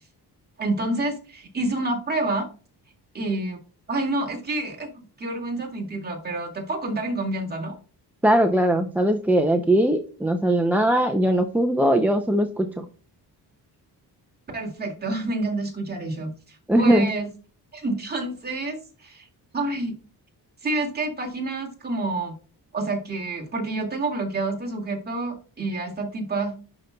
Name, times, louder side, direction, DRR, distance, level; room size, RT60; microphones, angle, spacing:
voice 1, 0.6-2.4 3.1-3.6 3.9-7.7 14.5-17.3 17.7-19.3 19.5-19.9 20.6-22.3 22.7-26.5, right 2 dB, 25° right, -1 dB, 2.1 m, -28 dB
voice 2, 8.2-12.9 16.7-17.1, right 1 dB, 5° right, 3 dB, 0.4 m, -20 dB
11.0 x 5.2 x 2.2 m, 0.37 s
wide cardioid pair, 180°, 40 cm